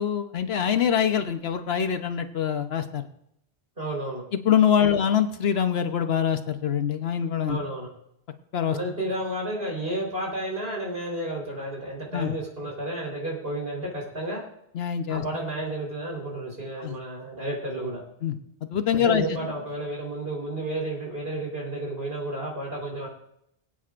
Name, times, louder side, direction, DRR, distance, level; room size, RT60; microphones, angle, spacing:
voice 1, 0.0-3.1 4.3-7.6 8.5-8.8 12.1-12.3 14.7-15.2 16.8-16.9 18.2-18.4 18.6-19.3, left 8 dB, 80° left, 8 dB, 1.1 m, -24 dB
voice 2, 3.8-4.2 4.8-4.9 7.5-7.9 8.7-14.4 15.1-18.0 18.9-23.1, right 1 dB, 70° right, -2 dB, 4.3 m, -32 dB
23.0 x 8.8 x 2.5 m, 0.76 s
omnidirectional pair, 1.0 m